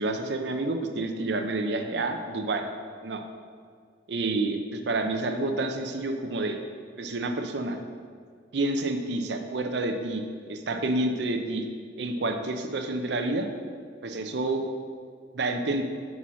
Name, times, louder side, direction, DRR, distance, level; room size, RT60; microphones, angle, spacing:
voice 1, 0.0-2.6 3.0-3.3 4.1-6.6 7.0-7.8 8.5-10.2 10.5-11.7 12.0-13.5 14.0-14.6 15.3-15.8, right 2 dB, 65° right, 5 dB, 0.6 m, -29 dB
6.0 x 4.2 x 6.1 m, 2.1 s
head